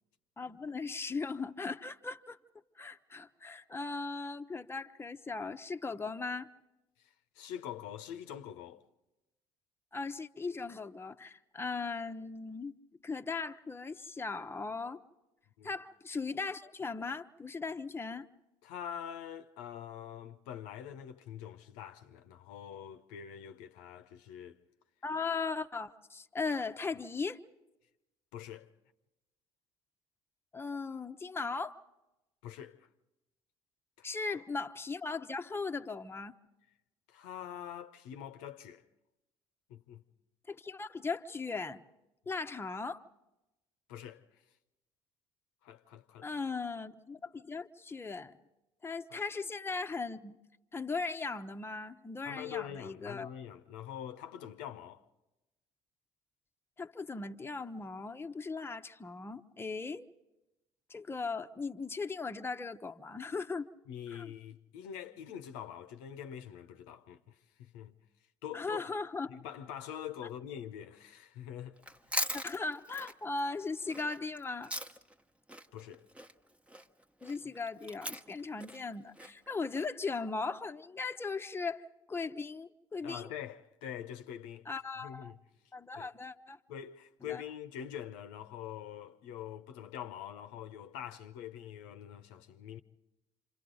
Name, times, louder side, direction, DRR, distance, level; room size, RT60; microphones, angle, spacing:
voice 1, 0.4-2.4 2.8-6.5 9.9-12.7 13.0-15.0 15.6-18.3 25.0-27.4 30.5-31.8 34.0-36.3 40.5-41.8 42.3-43.0 46.2-48.3 48.8-50.4 50.7-53.3 56.8-60.1 60.9-63.7 64.1-64.3 68.5-69.3 72.3-74.7 77.2-83.3 84.7-85.3 85.7-86.6 87.2-87.4, left 4 dB, 15° left, 0.8 m, -38 dB
voice 2, 7.0-8.8 15.6-15.8 18.6-24.6 28.3-28.7 32.4-32.9 34.0-34.4 37.1-38.8 39.7-40.0 43.9-44.4 45.6-46.3 49.1-49.2 52.2-55.0 63.9-68.0 68.4-68.9 69.3-71.8 75.7-76.1 83.0-84.7 85.0-85.4 85.9-86.1 86.7-92.8, left 10 dB, 70° left, 0.8 m, -45 dB
Chewing mastication, 71.8-75.2 75.5-79.8, equal, 10° right, 1.1 m, -40 dB
28.0 x 26.5 x 4.0 m
hypercardioid pair, 55°, 14 cm